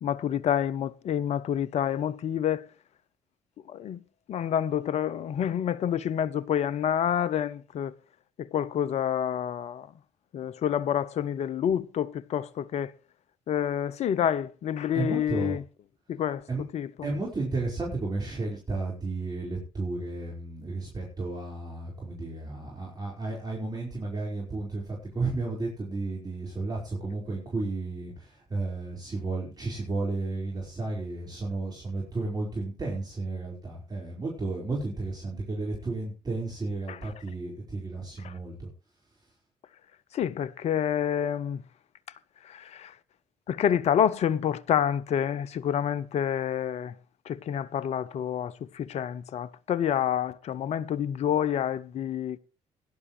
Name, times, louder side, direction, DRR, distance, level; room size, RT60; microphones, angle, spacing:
voice 1, 0.0-2.6 3.7-4.0 4.3-7.9 8.4-9.9 10.3-12.9 13.5-15.6 16.1-16.4 16.7-16.9 36.9-37.0 38.2-38.3 40.1-41.6 42.5-42.9 43.5-46.9 47.3-52.4, left 9 dB, 45° left, 0.6 m, -28 dB
voice 2, 14.9-15.6 16.5-16.6 17.0-38.7, right 3 dB, 25° right, 4.9 m, -33 dB
18.0 x 11.0 x 3.3 m
figure-of-eight pair, 45°, 15 cm